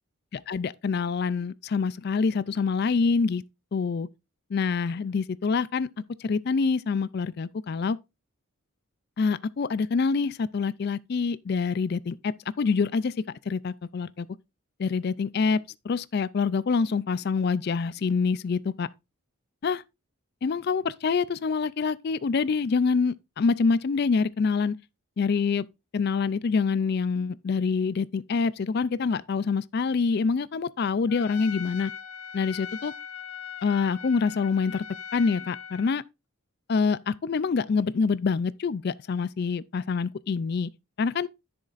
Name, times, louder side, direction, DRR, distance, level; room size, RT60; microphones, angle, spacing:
voice 1, 0.3-3.4 3.7-4.1 4.5-5.9 6.2-8.0 9.2-14.3 14.8-18.9 19.6-19.8 20.4-24.8 25.2-25.7 25.9-31.9 32.3-32.9 33.6-34.8 35.1-36.0 36.7-40.7 41.0-41.3, left 5 dB, 45° left, 0.3 m, -26 dB
Trumpet, 31.1-36.0, left 7 dB, 85° left, 0.7 m, -40 dB
10.5 x 6.4 x 2.5 m
head